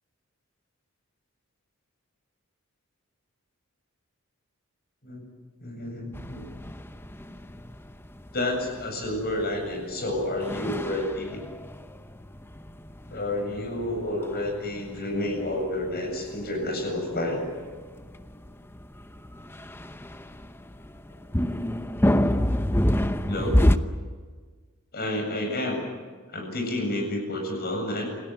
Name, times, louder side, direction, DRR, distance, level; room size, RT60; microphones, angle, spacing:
voice 1, 5.6-6.4 8.3-11.4 13.1-17.5 23.3-23.6 24.9-25.9 26.3-28.1, left 1 dB, 50° left, 2 dB, 7.9 m, -30 dB
sound 1, 6.1-23.8, left 1 dB, 10° left, 0.8 m, -29 dB
27.5 x 19.0 x 9.5 m, 1.5 s
head